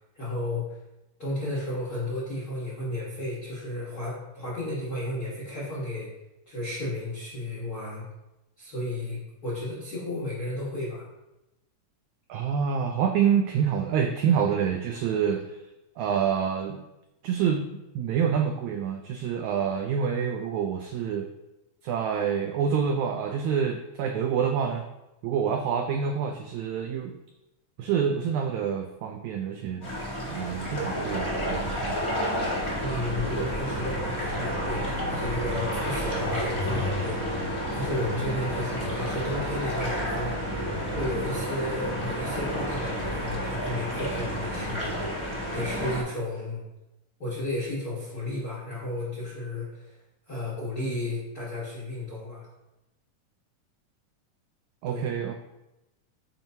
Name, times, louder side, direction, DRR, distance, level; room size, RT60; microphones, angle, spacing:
voice 1, 0.1-0.8 1.2-6.1 6.5-8.0 8.6-11.0 32.8-40.6 40.9-46.6 47.2-50.0 50.3-52.5 54.9-55.1, left 1 dB, 50° left, -6 dB, 1.1 m, -33 dB
voice 2, 12.3-15.6 16.0-16.9 17.2-17.6 17.9-21.3 21.8-24.8 25.2-27.2 27.8-29.8 30.3-32.0 54.8-55.3, right 7 dB, 90° right, 4 dB, 1.6 m, -27 dB
sound 1, 29.8-46.0, equal, 20° left, 0.8 m, -30 dB
9.0 x 4.4 x 2.7 m, 0.94 s
omnidirectional pair, 3.8 m